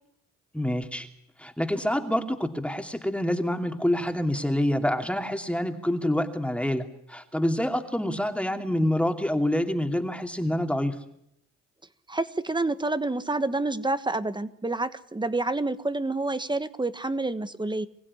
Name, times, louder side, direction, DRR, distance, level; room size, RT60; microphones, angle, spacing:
voice 1, 0.5-1.1 1.4-11.0, left 1 dB, 5° left, 5 dB, 2.8 m, -27 dB
voice 2, 12.1-17.9, right 2 dB, 15° right, 12 dB, 1.4 m, -28 dB
25.0 x 16.0 x 9.9 m, 0.76 s
cardioid pair, 90°, 30 cm